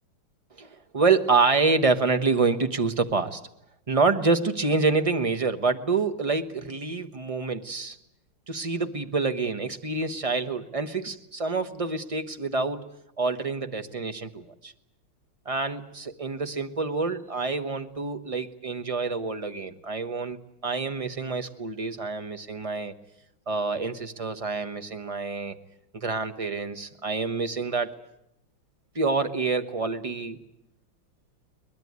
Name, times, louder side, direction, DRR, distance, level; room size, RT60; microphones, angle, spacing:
voice 1, 0.6-3.4 3.9-8.0 8.5-12.9 13.2-14.7 15.4-20.4 20.6-22.9 23.5-25.5 25.9-27.9 28.9-30.4, right 4 dB, 25° right, 8 dB, 0.8 m, -27 dB
22.5 x 21.0 x 9.5 m, 0.79 s
omnidirectional pair, 2.3 m